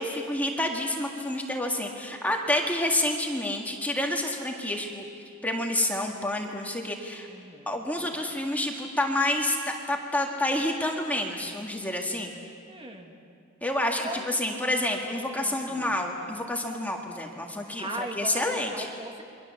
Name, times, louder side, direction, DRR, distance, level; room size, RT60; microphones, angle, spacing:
voice 1, 0.0-5.0 5.4-7.3 7.7-12.3 13.6-18.9, left 1 dB, 5° left, 1 dB, 1.9 m, -28 dB
voice 2, 7.3-7.7 12.7-13.1 14.0-14.5 15.2-16.0 17.8-19.2, right 1 dB, 25° right, 2 dB, 2.1 m, -39 dB
28.5 x 23.5 x 7.2 m, 2.4 s
head